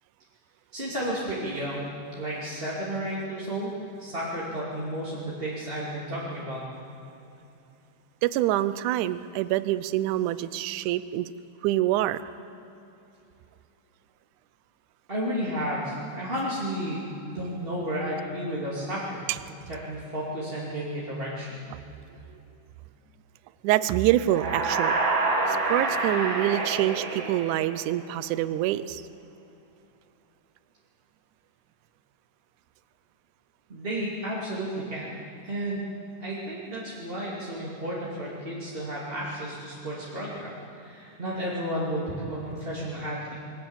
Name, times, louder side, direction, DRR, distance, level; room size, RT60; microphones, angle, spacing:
voice 1, 0.7-6.6 15.1-19.3 19.7-21.6 33.7-35.2 35.4-35.9 36.2-43.3, equal, 20° right, -7 dB, 2.6 m, -32 dB
voice 2, 8.2-11.3 11.6-12.2 19.3-19.4 21.7-21.8 23.6-24.9 25.5-29.0, right 14 dB, 80° right, 15 dB, 2.0 m, -26 dB
sound 1, 24.2-28.1, right 3 dB, 45° right, 1.8 m, -27 dB
22.5 x 17.5 x 7.2 m, 2.9 s
omnidirectional pair, 3.7 m